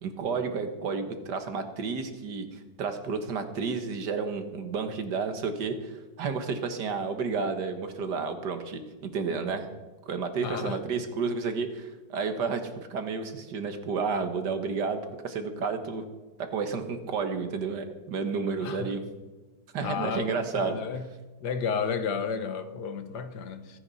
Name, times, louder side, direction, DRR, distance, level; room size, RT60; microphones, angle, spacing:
voice 1, 0.0-9.7 10.1-16.0 16.4-19.0 19.7-20.8, right 5 dB, 75° right, 8 dB, 2.0 m, -31 dB
voice 2, 10.4-10.8 18.6-18.9 19.8-21.0 21.4-23.8, left 6 dB, 70° left, 9 dB, 1.6 m, -32 dB
25.0 x 9.7 x 4.1 m, 1.2 s
omnidirectional pair, 1.9 m